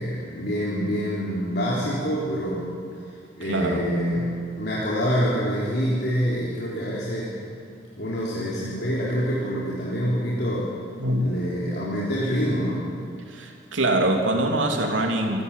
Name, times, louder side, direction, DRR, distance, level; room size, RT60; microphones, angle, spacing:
voice 1, 0.0-2.7 3.4-7.3 8.0-10.7 11.2-12.8, equal, 60° left, -7 dB, 3.9 m, -26 dB
voice 2, 3.4-3.8 11.0-11.3 13.3-15.4, right 1 dB, 90° right, 2 dB, 3.3 m, -24 dB
28.0 x 14.0 x 8.6 m, 2.4 s
head